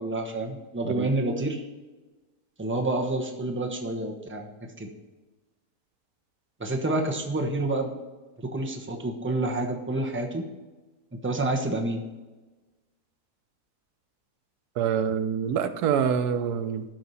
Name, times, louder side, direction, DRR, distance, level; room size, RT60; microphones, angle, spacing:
voice 1, 0.0-1.6 2.6-4.9 6.6-7.9 8.4-10.5 11.1-12.0, right 2 dB, 10° right, 2 dB, 1.0 m, -28 dB
voice 2, 14.8-16.8, right 7 dB, 90° right, 10 dB, 1.3 m, -26 dB
12.5 x 4.9 x 5.6 m, 1.2 s
omnidirectional pair, 1.6 m